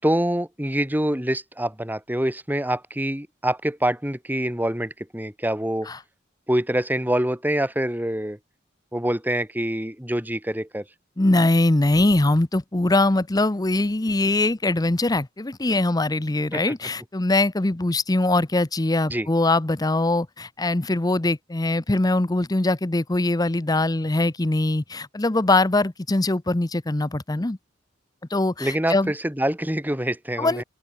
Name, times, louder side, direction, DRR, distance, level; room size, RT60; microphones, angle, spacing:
voice 1, 0.0-5.9 6.5-8.4 8.9-10.8 16.5-16.6 19.1-19.3 28.6-30.6, right 1 dB, 10° right, 4.5 m, -25 dB
voice 2, 11.2-27.6 28.3-29.1 30.4-30.6, left 2 dB, 20° left, 0.7 m, -22 dB
open air
head